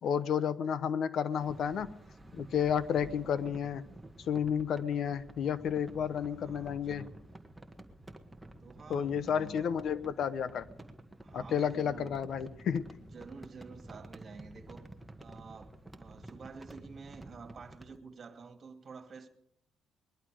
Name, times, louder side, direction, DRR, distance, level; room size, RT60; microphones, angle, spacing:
voice 1, 0.0-1.9 2.3-3.8 4.3-7.0 8.9-10.6 11.3-12.9, left 8 dB, 65° left, 1.0 m, -31 dB
sound 1, 1.3-18.0, right 1 dB, 5° right, 1.7 m, -51 dB
voice 2, 6.0-7.1 8.6-9.7 11.2-12.1 13.1-14.9 15.2-19.3, right 5 dB, 45° right, 2.3 m, -50 dB
21.5 x 11.5 x 5.0 m
cardioid pair, 90°, 0 cm